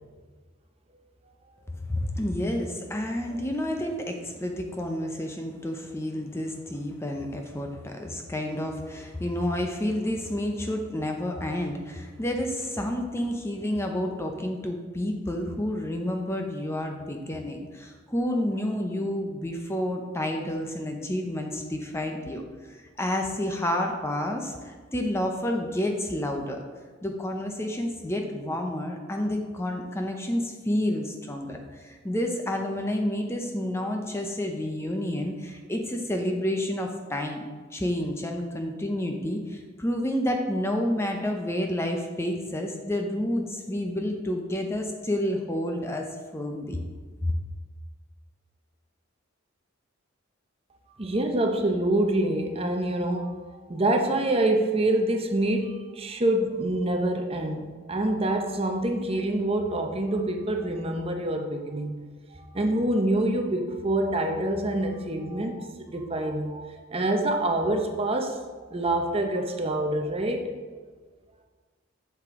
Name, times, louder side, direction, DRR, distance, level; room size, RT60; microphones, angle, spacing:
voice 1, 1.9-26.6 27.0-37.4 37.7-46.1 46.3-46.8 47.2-47.3, left 1 dB, 10° left, 3 dB, 0.6 m, -30 dB
voice 2, 51.0-62.0 62.3-68.4 68.7-70.8, right 1 dB, 25° right, 3 dB, 0.7 m, -26 dB
7.9 x 6.9 x 3.6 m, 1.4 s
head